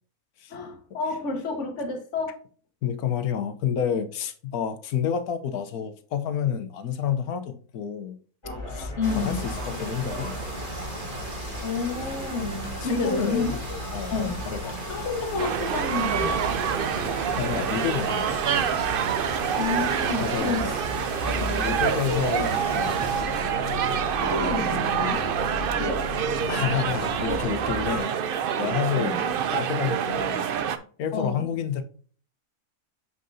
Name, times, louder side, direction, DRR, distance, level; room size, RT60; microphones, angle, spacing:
voice 1, 0.5-2.4 9.0-9.4 11.6-13.6 14.1-14.4 14.9-16.5 19.3-20.7 21.4-22.2 24.2-25.3 25.6-26.1 28.9-29.3 31.1-31.5, left 4 dB, 55° left, 1.6 m, -30 dB
voice 2, 2.8-8.2 8.7-10.4 12.8-13.6 13.9-14.7 17.4-18.3 20.2-20.6 21.5-23.3 26.5-28.1 28.6-29.1 29.5-30.4 31.0-31.8, left 8 dB, 80° left, 1.3 m, -29 dB
sound 1, 8.4-28.0, left 2 dB, 20° left, 1.9 m, -37 dB
sound 2, 9.0-23.2, right 1 dB, 35° right, 2.4 m, -36 dB
sound 3, 15.4-30.8, right 8 dB, 65° right, 0.5 m, -27 dB
6.8 x 6.4 x 2.7 m
omnidirectional pair, 1.5 m